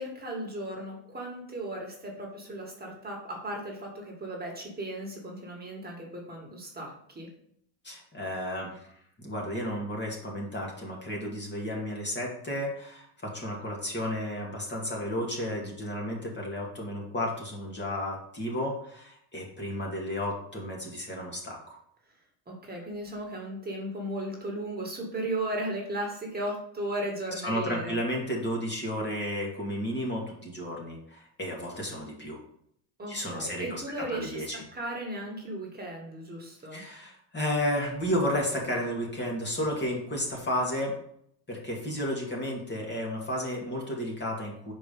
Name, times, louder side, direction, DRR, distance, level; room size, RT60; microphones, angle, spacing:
voice 1, 0.0-7.3 22.5-28.0 33.0-36.8, right 1 dB, 20° right, -1 dB, 2.0 m, -36 dB
voice 2, 7.8-8.9 9.2-21.8 27.4-32.4 33.1-33.8 34.1-34.6 36.7-40.9 41.5-44.7, equal, 25° left, -2 dB, 2.1 m, -32 dB
5.0 x 4.7 x 5.4 m, 0.70 s
supercardioid pair, 95°, 43 cm